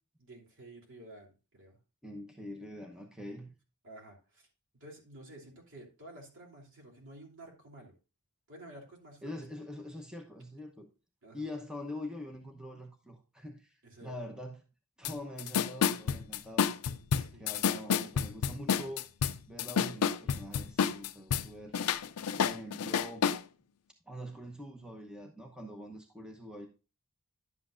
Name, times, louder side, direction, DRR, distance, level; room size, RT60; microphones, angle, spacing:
voice 1, 0.2-1.8 3.8-4.5 4.8-7.9 8.5-9.4 11.2-11.5 13.8-14.2 17.0-17.5, right 1 dB, 60° right, -1 dB, 2.9 m, -52 dB
voice 2, 2.0-3.5 9.2-10.9 11.3-14.6 15.0-16.7 17.4-19.0 19.5-21.8 22.4-23.3 24.1-26.7, left 1 dB, 5° right, 2 dB, 0.9 m, -44 dB
sound 1, 15.0-15.1 15.4-21.5 21.7-23.4, left 7 dB, 85° left, 0.5 m, -29 dB
11.0 x 7.7 x 2.5 m, 0.32 s
head